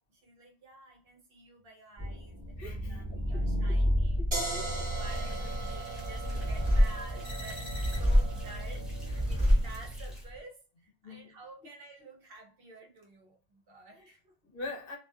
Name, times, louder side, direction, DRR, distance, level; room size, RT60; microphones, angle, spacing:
voice 1, 0.1-4.2 4.7-14.3, right 2 dB, 60° right, 0.8 m, -51 dB
sound 1, 2.0-10.3, equal, 20° left, 1.2 m, -29 dB
voice 2, 2.6-3.4 3.7-3.8 4.2-4.7 7.8-7.9 11.0-11.2 14.0-14.2 14.4-15.0, left 3 dB, 55° left, 0.8 m, -43 dB
sound 2, 4.3-10.1, right 2 dB, 25° right, 0.9 m, -39 dB
sound 3, 5.0-10.2, equal, ahead, 0.4 m, -55 dB
2.4 x 2.3 x 2.3 m
omnidirectional pair, 1.2 m